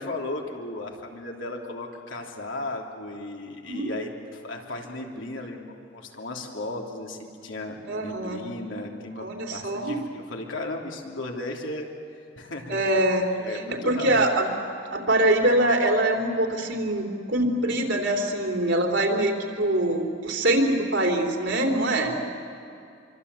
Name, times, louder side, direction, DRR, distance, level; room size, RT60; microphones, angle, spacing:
voice 1, 0.0-11.9 12.4-13.0 13.4-14.2 22.0-22.1, left 2 dB, 85° left, 0 dB, 3.2 m, -35 dB
voice 2, 3.7-4.1 7.9-8.5 9.2-10.0 12.7-14.4 14.9-22.1, right 1 dB, 70° right, 1 dB, 3.5 m, -24 dB
26.5 x 24.0 x 8.3 m, 2.5 s
head